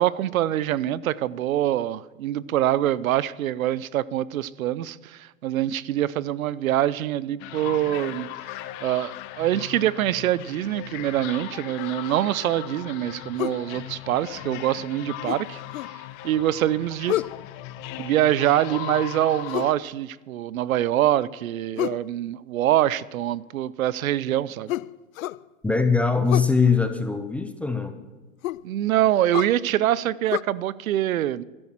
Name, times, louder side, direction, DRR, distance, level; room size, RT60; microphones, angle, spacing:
voice 1, 0.0-8.3 8.8-15.6 16.2-17.2 18.0-24.7 28.6-31.4, right 12 dB, 80° right, 0.7 m, -24 dB
sound 1, 7.4-19.7, left 14 dB, 40° left, 0.9 m, -38 dB
sound 2, 13.4-13.6 15.3-16.0 17.1-17.4 19.5-19.8 21.8-22.1 24.7-25.4 26.3-26.6 28.4-28.7 29.3-29.6 30.3-30.4, left 15 dB, 80° left, 0.5 m, -29 dB
voice 2, 25.6-28.0, left 5 dB, 5° left, 0.4 m, -22 dB
12.5 x 10.5 x 7.3 m
hypercardioid pair, 135°, 41 cm